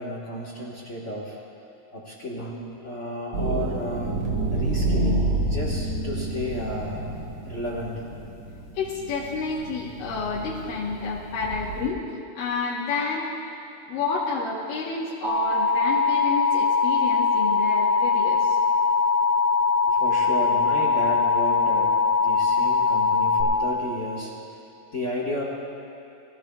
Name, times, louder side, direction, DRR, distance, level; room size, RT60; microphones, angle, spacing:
voice 1, 0.0-1.4 1.9-4.2 4.5-7.0 7.4-8.0 19.9-21.9 22.2-24.3 24.9-25.4, left 1 dB, 60° left, -4 dB, 0.8 m, -32 dB
sound 1, 3.3-11.9, right 2 dB, 55° right, 2.3 m, -29 dB
voice 2, 8.7-12.0 12.4-13.3 13.9-18.6, left 4 dB, 85° left, -6 dB, 2.8 m, -30 dB
Alarm, 15.2-23.4, left 4 dB, 80° right, 3.7 m, -21 dB
22.0 x 15.0 x 2.3 m, 2.7 s
omnidirectional pair, 3.7 m